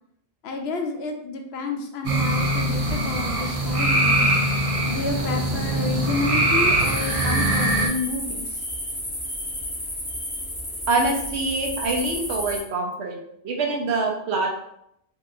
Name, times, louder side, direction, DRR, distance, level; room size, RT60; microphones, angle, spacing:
voice 1, 0.4-4.3 4.9-8.5, left 3 dB, 70° left, 3 dB, 0.8 m, -30 dB
sound 1, 2.0-7.9, right 1 dB, 40° right, 0.5 m, -22 dB
sound 2, 6.8-12.6, left 1 dB, 25° left, 1.2 m, -32 dB
voice 2, 10.9-13.2 13.4-14.5, right 3 dB, 75° right, 1 dB, 1.0 m, -25 dB
3.7 x 2.9 x 2.4 m, 0.74 s
omnidirectional pair, 1.1 m